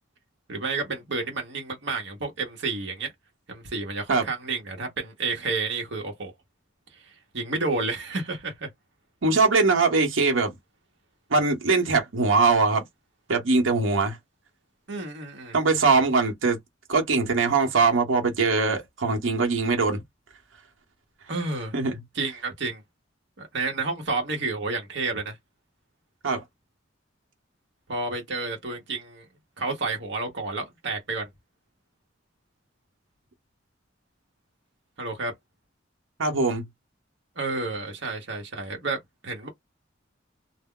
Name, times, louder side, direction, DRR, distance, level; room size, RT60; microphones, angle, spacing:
voice 1, 0.5-3.1 3.5-6.3 7.3-8.7 14.9-15.6 21.3-21.7 22.1-22.8 23.4-25.4 27.9-29.2 29.6-31.3 35.0-35.3 37.4-39.5, right 3 dB, 60° right, 0.9 m, -30 dB
voice 2, 9.2-10.5 11.3-12.8 13.3-14.2 15.5-16.6 16.9-20.0 21.7-22.0 26.2-26.4 36.2-36.7, right 4 dB, 90° right, 0.9 m, -22 dB
2.2 x 2.0 x 3.6 m
head